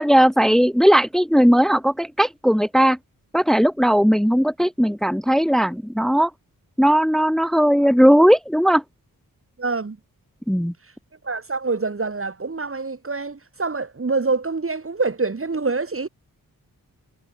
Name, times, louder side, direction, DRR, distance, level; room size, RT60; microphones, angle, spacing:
voice 1, 0.0-3.0 3.3-6.3 6.8-8.8 10.5-10.7, equal, ahead, 1.5 m, -17 dB
voice 2, 9.6-10.0 11.2-16.1, right 4 dB, 40° right, 2.5 m, -26 dB
cardioid pair, 70°, 36 cm